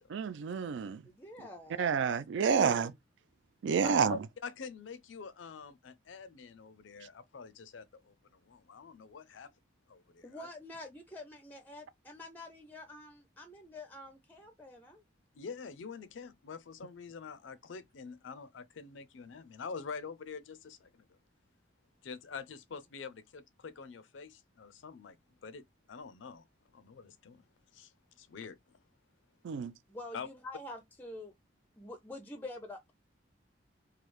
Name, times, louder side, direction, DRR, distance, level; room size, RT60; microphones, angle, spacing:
voice 1, 0.1-1.0 1.8-2.9 3.6-4.2 29.4-29.7, right 6 dB, 75° right, 0.3 m, -29 dB
voice 2, 1.0-2.0 2.4-2.9 10.2-15.0 29.9-31.3 31.8-32.9, left 1 dB, 10° left, 0.4 m, -47 dB
voice 3, 3.8-9.5 9.9-10.5 15.4-21.2 22.0-26.5 26.7-27.4 27.7-28.6 30.1-30.3, left 5 dB, 80° left, 0.5 m, -46 dB
3.2 x 2.3 x 3.1 m
head